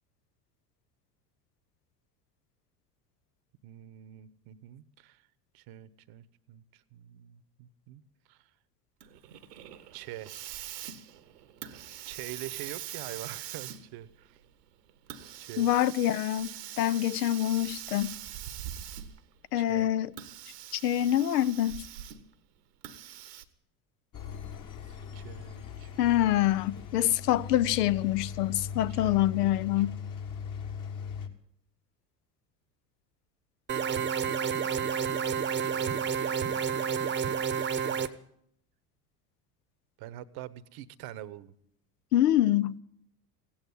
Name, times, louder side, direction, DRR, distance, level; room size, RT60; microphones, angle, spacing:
voice 1, 3.6-5.2 5.5-8.0 8.3-8.4 9.9-10.3 12.1-14.4 15.4-15.7 19.5-19.9 24.9-26.3 28.9-29.2 35.6-36.9 37.8-38.1 40.0-41.5, right 13 dB, 50° right, 1.0 m, -45 dB
Hiss, 9.0-19.3 20.1-22.3 22.8-23.5, right 11 dB, 75° right, 1.2 m, -43 dB
voice 2, 15.6-16.5 16.8-18.1 19.5-20.1 20.7-21.8 26.0-30.0 42.1-42.8, left 13 dB, 75° left, 0.7 m, -26 dB
Engine, 24.1-31.3, left 7 dB, 40° left, 1.8 m, -39 dB
sound 1, 33.7-38.1, right 7 dB, 25° right, 0.9 m, -29 dB
16.5 x 8.7 x 9.6 m
hypercardioid pair, 70°, 48 cm